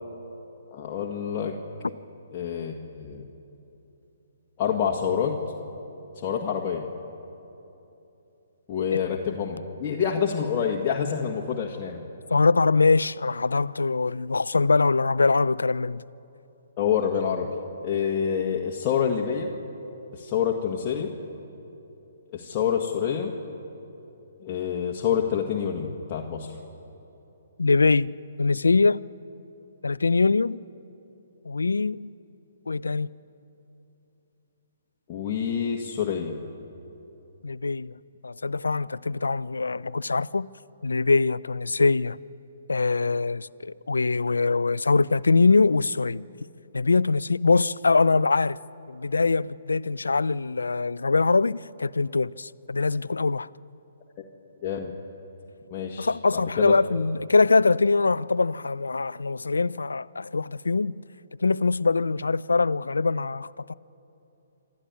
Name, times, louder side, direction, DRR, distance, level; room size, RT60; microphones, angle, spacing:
voice 1, 0.7-1.5 2.3-3.2 4.6-5.3 6.2-6.8 8.7-12.0 16.8-17.5 17.8-19.5 20.1-21.1 22.3-23.3 24.4-26.5 35.1-36.3 54.2-54.3 54.6-54.9 55.7-56.7, left 7 dB, 30° left, 1.7 m, -27 dB
voice 2, 12.3-16.0 27.6-29.0 29.8-30.6 31.4-32.1 32.7-33.1 37.4-38.0 38.2-40.5 40.8-42.2 42.7-46.3 46.7-48.6 48.9-53.5 56.0-61.0 61.4-63.7, left 3 dB, 85° left, 0.4 m, -23 dB
26.5 x 13.0 x 9.6 m
hypercardioid pair, 135°, 0 cm